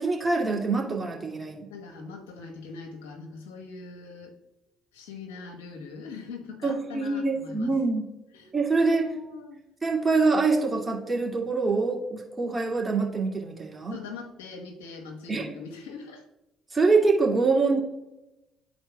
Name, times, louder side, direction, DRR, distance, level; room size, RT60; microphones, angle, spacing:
voice 1, 0.0-1.7 6.6-8.0 8.5-9.1 9.8-14.0 15.3-15.5 16.7-17.8, right 3 dB, 20° right, -1 dB, 2.1 m, -25 dB
voice 2, 1.7-4.3 4.9-7.7 8.3-9.6 13.9-16.3, left 4 dB, 85° left, 3 dB, 1.1 m, -42 dB
12.5 x 4.3 x 2.2 m, 0.93 s
hypercardioid pair, 55°, 0 cm